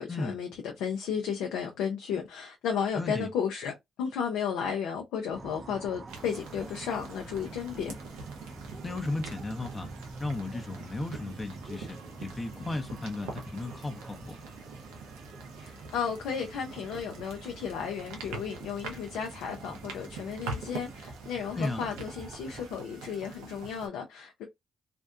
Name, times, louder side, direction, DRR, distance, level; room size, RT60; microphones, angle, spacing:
voice 1, 0.0-7.9 15.6-24.5, left 7 dB, 80° left, 0.5 m, -34 dB
voice 2, 3.0-3.3 8.8-9.9 10.2-14.4 21.5-21.8, left 2 dB, 30° left, 0.7 m, -35 dB
sound 1, 5.3-22.7, right 3 dB, 35° right, 0.5 m, -47 dB
sound 2, 6.1-23.9, right 4 dB, 90° right, 0.6 m, -44 dB
2.6 x 2.2 x 2.4 m
supercardioid pair, 55°, 0 cm